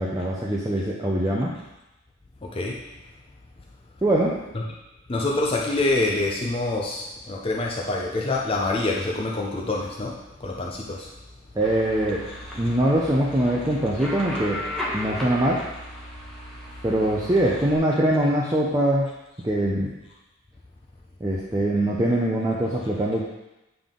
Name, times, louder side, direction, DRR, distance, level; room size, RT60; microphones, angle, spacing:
voice 1, 0.0-1.5 4.0-4.4 11.5-12.3 12.6-14.7 14.9-15.6 16.8-19.1 19.4-19.9 21.2-23.2, right 1 dB, 20° right, -4 dB, 0.6 m, -23 dB
voice 2, 2.4-2.8 4.5-4.6 5.1-11.1, left 2 dB, 30° left, -2 dB, 0.6 m, -26 dB
sound 1, 11.6-17.8, equal, ahead, 1.2 m, -35 dB
8.8 x 3.7 x 3.8 m, 0.98 s
head